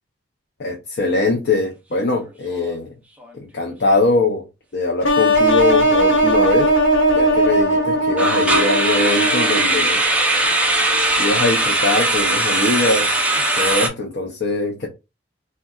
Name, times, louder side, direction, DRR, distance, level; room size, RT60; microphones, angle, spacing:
voice 1, 0.6-2.9 3.3-4.4 4.7-6.7 7.1-10.0 11.2-13.2 13.5-14.9, left 3 dB, 55° left, 0.6 m, -21 dB
sound 1, 2.0-2.3 2.5-2.7 3.2-3.3 8.2-13.9, right 2 dB, 5° right, 0.5 m, -19 dB
sound 2, 5.0-9.9, right 1 dB, 85° left, 1.2 m, -18 dB
3.6 x 2.2 x 2.3 m
head